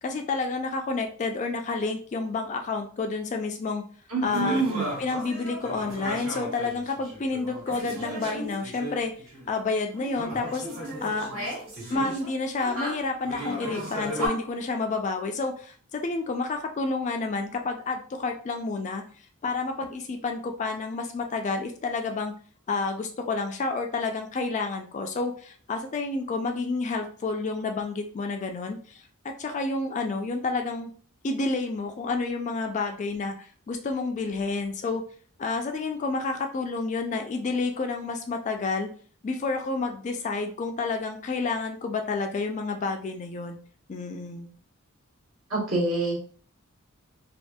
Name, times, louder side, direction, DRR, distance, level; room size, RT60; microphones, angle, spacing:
voice 1, 0.0-3.8 4.2-4.6 5.0-9.1 9.5-10.7 11.0-11.3 11.9-19.0 19.4-22.3 22.7-30.9 31.2-35.0 35.4-38.9 39.2-43.6 43.9-44.5, left 3 dB, 35° left, 4 dB, 0.3 m, -29 dB
voice 2, 4.1-4.8 45.5-46.2, right 2 dB, 70° right, -4 dB, 1.2 m, -26 dB
sound 1, 4.2-9.5 9.9-14.3, right 1 dB, 85° right, 1.4 m, -35 dB
2.6 x 2.4 x 2.2 m, 0.43 s
head